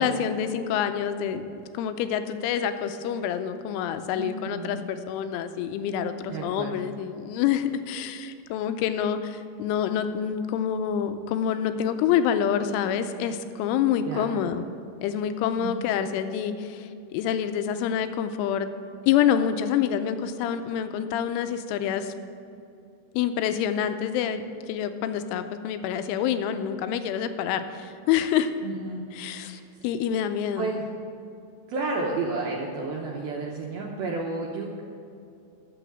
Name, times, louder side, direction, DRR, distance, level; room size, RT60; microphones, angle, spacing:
voice 1, 0.0-1.4 1.7-14.6 15.0-18.7 19.1-22.1 23.1-28.5 29.1-30.7, left 9 dB, 85° left, 9 dB, 3.1 m, -27 dB
voice 2, 4.1-4.8 6.3-6.8 14.1-14.3 15.6-15.7 28.6-29.6 30.6-30.9 31.7-34.8, right 3 dB, 80° right, -2 dB, 2.2 m, -31 dB
11.0 x 7.0 x 7.9 m, 2.5 s
omnidirectional pair, 5.5 m